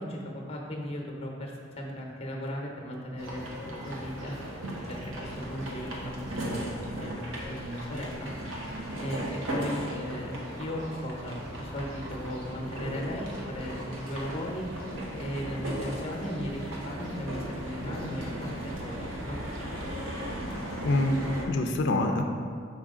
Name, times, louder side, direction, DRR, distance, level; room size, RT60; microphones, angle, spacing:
voice 1, 0.0-4.4 4.9-7.1 7.5-8.3 9.0-14.7 15.2-19.4, equal, 30° left, 0 dB, 0.9 m, -37 dB
sound 1, 3.2-21.4, equal, 85° right, 1.0 m, -37 dB
voice 2, 20.8-22.2, left 2 dB, 60° left, 3 dB, 0.4 m, -26 dB
5.8 x 4.6 x 3.7 m, 2.1 s
head